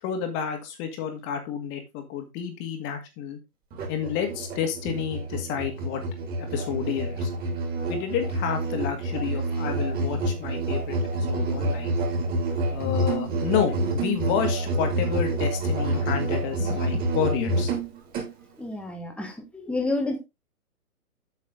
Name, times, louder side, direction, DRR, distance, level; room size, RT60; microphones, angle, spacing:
voice 1, 0.0-3.4 3.9-6.0 6.4-7.3 7.9-12.0 12.7-17.7, left 8 dB, 25° left, 6 dB, 2.1 m, -30 dB
Musical instrument, 3.7-18.3, right 2 dB, 20° right, 3.7 m, -28 dB
voice 2, 18.6-20.2, left 2 dB, ahead, 3 dB, 1.7 m, -29 dB
8.4 x 7.3 x 3.8 m, 0.23 s
hypercardioid pair, 135°, 45 cm